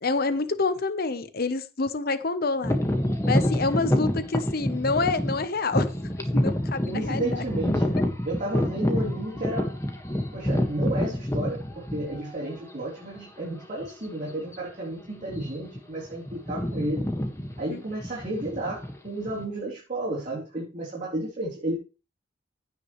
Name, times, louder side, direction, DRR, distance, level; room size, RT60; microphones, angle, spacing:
voice 1, 0.0-2.8 3.3-5.9 6.3-7.4 17.7-17.8, left 3 dB, 55° left, 0.9 m, -27 dB
sound 1, 2.6-12.4 13.1-13.2 13.8-14.0 14.3-14.6 15.2-15.8 16.0-19.4, left 1 dB, 15° left, 1.6 m, -27 dB
voice 2, 6.9-9.8 10.3-17.1 17.6-21.8, right 1 dB, 40° right, 3.8 m, -32 dB
16.0 x 6.2 x 3.2 m
head